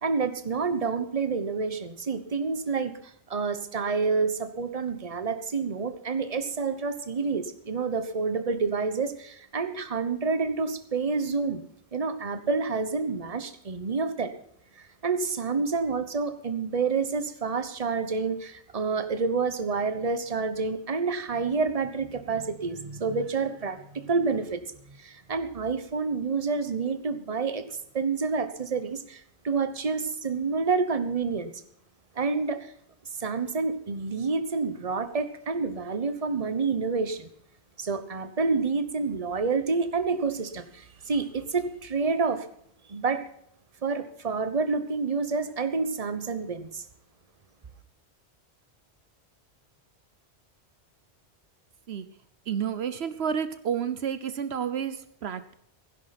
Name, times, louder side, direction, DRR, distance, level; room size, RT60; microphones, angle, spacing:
voice 1, 0.0-11.6 11.9-14.3 14.8-24.6 25.0-31.5 32.1-32.7 33.2-37.3 37.8-42.5 42.9-43.2 43.8-46.8, right 4 dB, 35° right, 10 dB, 1.2 m, -28 dB
voice 2, 52.5-55.5, right 8 dB, 75° right, 12 dB, 1.1 m, -30 dB
16.0 x 10.5 x 5.9 m, 0.68 s
omnidirectional pair, 1.1 m